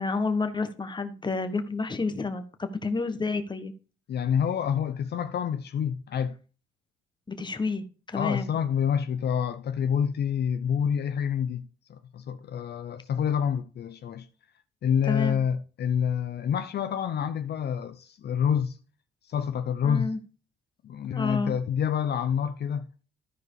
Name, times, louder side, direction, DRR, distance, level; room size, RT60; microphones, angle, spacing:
voice 1, 0.0-3.7 7.3-8.5 15.0-15.4 19.8-20.2 21.1-21.5, left 4 dB, 20° left, 1.4 m, -30 dB
voice 2, 4.1-6.4 8.1-14.3 14.8-18.8 19.2-20.1 20.8-22.9, left 8 dB, 55° left, 0.7 m, -27 dB
13.5 x 4.8 x 4.8 m
cardioid pair, 90°, 20 cm